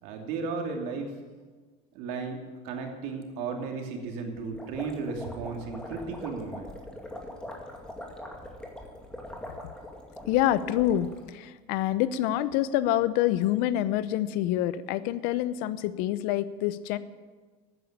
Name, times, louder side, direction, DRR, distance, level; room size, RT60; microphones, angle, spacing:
voice 1, 0.0-1.1 1.9-6.7, right 4 dB, 75° right, 3 dB, 2.6 m, -34 dB
sound 1, 4.4-11.2, left 1 dB, 5° left, 2.1 m, -42 dB
voice 2, 10.3-17.0, left 13 dB, 75° left, 15 dB, 0.7 m, -26 dB
12.0 x 9.4 x 8.7 m, 1.4 s
cardioid pair, 130°, 16 cm